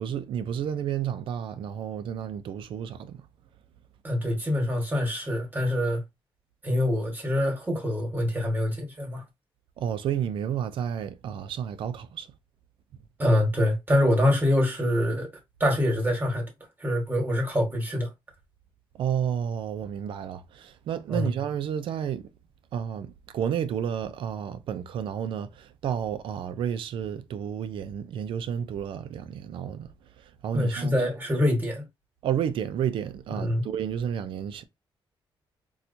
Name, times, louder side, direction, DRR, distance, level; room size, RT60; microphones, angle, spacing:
voice 1, 0.0-3.2 9.8-12.3 19.0-22.3 22.7-29.9 30.2-31.0 32.2-34.6, right 9 dB, 70° right, 0.4 m, -31 dB
voice 2, 4.0-6.0 6.6-9.2 13.2-15.3 15.6-16.4 16.8-18.1 21.1-21.3 30.5-31.8 33.3-33.6, left 1 dB, 20° right, 1.4 m, -25 dB
4.3 x 2.3 x 2.6 m
cardioid pair, 145°, 9 cm